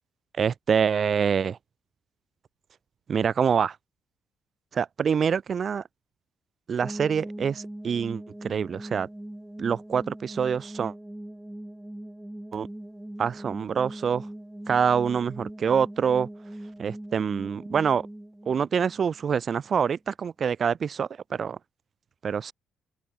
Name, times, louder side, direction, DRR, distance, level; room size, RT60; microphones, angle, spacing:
voice 1, 0.4-1.6 3.1-3.8 4.7-5.8 6.7-9.1 9.6-10.9 12.5-12.7 13.2-14.3 14.7-16.3 16.8-18.0 18.5-21.6 22.2-22.5, right 7 dB, 45° right, 0.7 m, -26 dB
sound 1, 6.8-19.7, right 1 dB, 5° right, 3.5 m, -41 dB
open air
cardioid pair, 85°, 0 cm